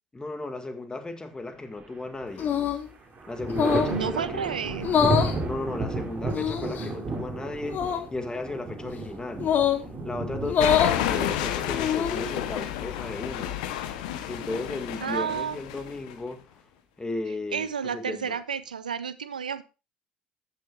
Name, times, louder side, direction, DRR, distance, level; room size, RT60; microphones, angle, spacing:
voice 1, 0.1-2.5 3.3-4.5 5.4-9.5 10.0-13.6 14.3-16.6 17.0-17.7 17.9-18.4, left 2 dB, 20° left, 2.0 m, -35 dB
Thunder, 1.7-2.5 2.9-12.5 14.0-14.8, right 2 dB, 35° right, 2.8 m, -33 dB
sound 1, 2.4-2.9 3.5-4.0 4.8-5.4 6.3-6.9 7.7-8.0 9.4-9.8 10.4-11.0 11.7-12.2, left 7 dB, 45° left, 1.5 m, -24 dB
voice 2, 3.9-4.9 15.0-15.6 17.5-19.6, right 7 dB, 90° right, 0.5 m, -31 dB
sound 2, 10.6-16.1, left 11 dB, 70° left, 0.9 m, -30 dB
14.5 x 6.5 x 2.5 m
hypercardioid pair, 60°, 4 cm